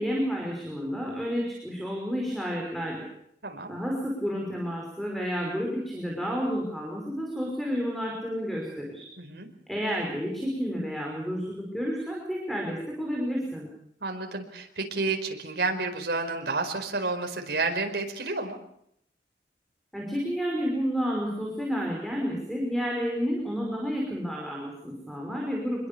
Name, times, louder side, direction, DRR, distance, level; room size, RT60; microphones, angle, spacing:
voice 1, 0.0-3.0 3.7-9.1 9.7-13.7 19.9-25.9, equal, ahead, -1 dB, 5.6 m, -30 dB
voice 2, 9.2-9.5 14.0-18.6, right 3 dB, 70° right, 4 dB, 4.8 m, -30 dB
26.5 x 21.5 x 7.0 m, 0.72 s
head